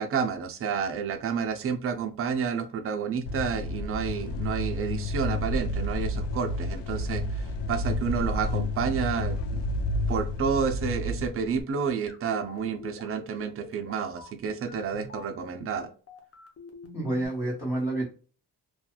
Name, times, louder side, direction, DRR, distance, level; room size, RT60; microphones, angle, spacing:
voice 1, 0.0-9.6 10.1-15.9, right 6 dB, 35° right, 7 dB, 0.4 m, -30 dB
sound 1, 3.3-11.6, left 1 dB, 80° left, 0.5 m, -30 dB
sound 2, 12.1-17.3, left 4 dB, 35° left, 0.6 m, -46 dB
voice 2, 16.9-18.0, right 2 dB, 20° left, -9 dB, 1.3 m, -28 dB
2.8 x 2.3 x 2.2 m, 0.37 s
wide cardioid pair, 135°, 41 cm